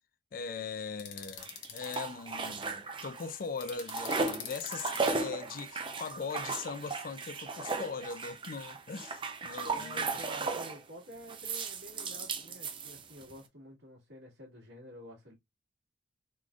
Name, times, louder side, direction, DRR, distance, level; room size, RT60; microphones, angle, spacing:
voice 1, 0.3-10.2, left 5 dB, 50° left, 0.4 m, -40 dB
sound 1, 1.0-2.0 3.6-5.1, left 8 dB, 90° left, 0.9 m, -43 dB
sound 2, 1.4-3.3 3.6-10.8 11.3-13.3, right 4 dB, 25° right, 0.6 m, -36 dB
voice 2, 9.7-15.3, equal, 75° right, 1.7 m, -50 dB
3.8 x 3.2 x 2.4 m
head